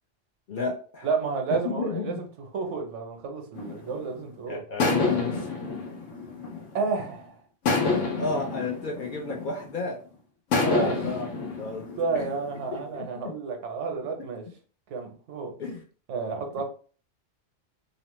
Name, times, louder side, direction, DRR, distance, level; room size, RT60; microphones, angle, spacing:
voice 1, 0.5-1.1 1.6-2.2 4.5-5.6 8.2-10.0 10.6-11.3 11.6-11.9 12.1-12.3 12.7-13.4 15.6-15.8 16.6-16.7, left 3 dB, 60° left, 0 dB, 0.6 m, -32 dB
voice 2, 1.0-2.3 2.5-4.6 6.7-7.3 10.6-10.9 12.0-14.4 14.9-15.5 16.1-16.6, right 4 dB, 80° right, 4 dB, 1.0 m, -30 dB
sound 1, 3.5-4.2 4.8-7.0 7.6-9.9 10.5-12.8, left 3 dB, 85° left, 1.0 m, -28 dB
2.8 x 2.0 x 3.0 m, 0.39 s
omnidirectional pair, 1.2 m